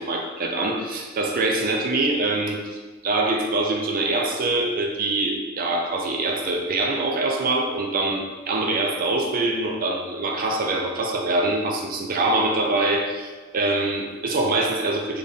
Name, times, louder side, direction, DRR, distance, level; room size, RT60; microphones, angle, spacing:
voice 1, 0.0-15.2, right 2 dB, 45° right, 1 dB, 0.5 m, -24 dB
3.3 x 2.6 x 4.0 m, 1.3 s
head